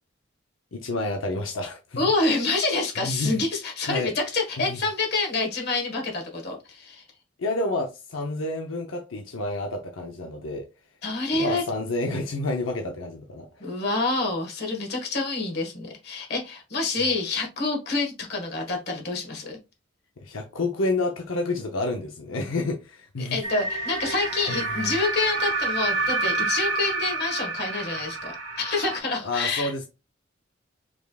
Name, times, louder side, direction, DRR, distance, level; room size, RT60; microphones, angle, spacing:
voice 1, 0.7-2.1 3.0-3.4 3.8-4.1 4.6-4.8 7.4-10.6 11.3-13.7 20.2-23.4 24.5-24.8 29.2-29.9, left 2 dB, 85° left, 0.7 m, -29 dB
voice 2, 2.0-7.0 11.0-11.6 13.6-19.6 23.2-29.9, left 3 dB, 55° left, 1.5 m, -27 dB
sound 1, 23.4-29.0, right 3 dB, 80° right, 1.3 m, -28 dB
5.2 x 3.4 x 2.3 m
head